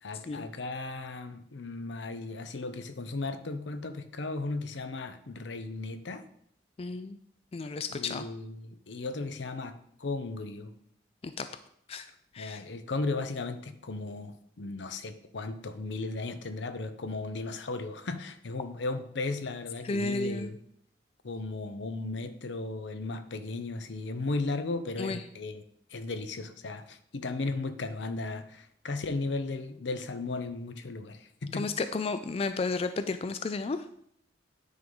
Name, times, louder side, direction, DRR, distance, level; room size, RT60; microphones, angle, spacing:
voice 1, 0.0-6.2 7.9-10.7 12.4-20.5 21.2-25.6 25.9-31.7, left 3 dB, 80° left, 10 dB, 0.7 m, -36 dB
voice 2, 6.8-7.2 7.5-8.3 11.2-11.5 11.9-12.1 12.3-12.6 19.8-20.5 25.0-25.2 31.5-33.8, left 3 dB, 30° left, 10 dB, 0.3 m, -32 dB
9.6 x 3.8 x 5.4 m, 0.67 s
head